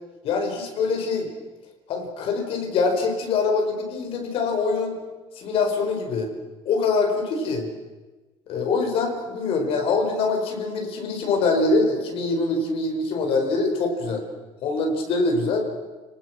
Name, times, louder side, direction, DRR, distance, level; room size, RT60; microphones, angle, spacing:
voice 1, 0.2-1.3 1.9-5.0 5.3-6.3 6.6-7.7 8.5-14.2 14.6-15.7, left 3 dB, 65° left, 3 dB, 4.8 m, -24 dB
30.0 x 19.0 x 6.2 m, 1.2 s
cardioid pair, 130°, 11 cm